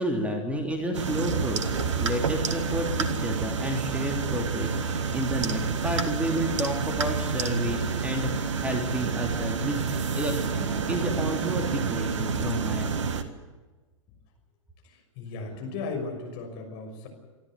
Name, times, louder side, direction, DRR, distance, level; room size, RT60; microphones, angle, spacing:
voice 1, 0.0-9.9 10.1-13.1, equal, 10° right, 2 dB, 2.9 m, -31 dB
sound 1, 0.9-13.2, right 5 dB, 65° right, 1.8 m, -28 dB
voice 2, 14.8-17.1, left 3 dB, 45° left, 4 dB, 6.1 m, -36 dB
25.5 x 13.5 x 9.8 m, 1.3 s
figure-of-eight pair, 100°, 17 cm